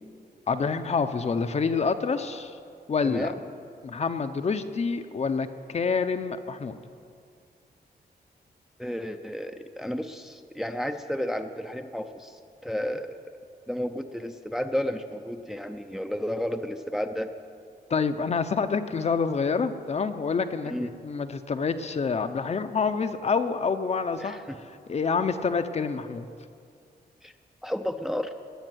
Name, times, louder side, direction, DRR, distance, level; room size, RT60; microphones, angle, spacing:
voice 1, 0.5-2.6 2.9-3.3 3.8-6.8 17.9-24.4 24.9-26.2, left 5 dB, 40° left, 9 dB, 0.7 m, -27 dB
voice 2, 3.0-3.4 8.8-13.2 13.7-17.3 20.6-20.9 24.2-24.6 27.2-27.3 27.6-28.3, equal, ahead, 6 dB, 0.6 m, -32 dB
19.5 x 7.2 x 9.2 m, 2.3 s
wide cardioid pair, 145°, 17 cm